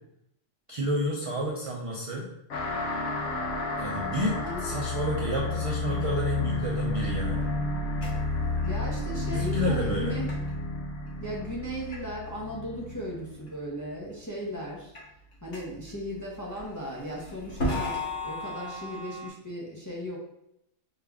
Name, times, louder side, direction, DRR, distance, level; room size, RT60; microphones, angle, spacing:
voice 1, 0.7-2.3 3.8-7.4 9.3-10.2, equal, 55° right, -3 dB, 0.3 m, -30 dB
sound 1, 2.5-13.5, left 3 dB, 80° left, 1.3 m, -31 dB
sound 2, 3.3-6.9 7.3-7.5 8.0-8.3 8.6-10.5 11.1-11.2 11.9-12.0 12.3-12.4 12.9-13.0 13.4-14.1 14.5-19.3, left 1 dB, 65° left, 1.3 m, -38 dB
voice 2, 4.4-4.7 8.6-10.3 11.2-14.9 15.4-20.2, equal, 20° left, -4 dB, 0.5 m, -37 dB
5.1 x 2.4 x 3.4 m, 0.79 s
omnidirectional pair, 1.4 m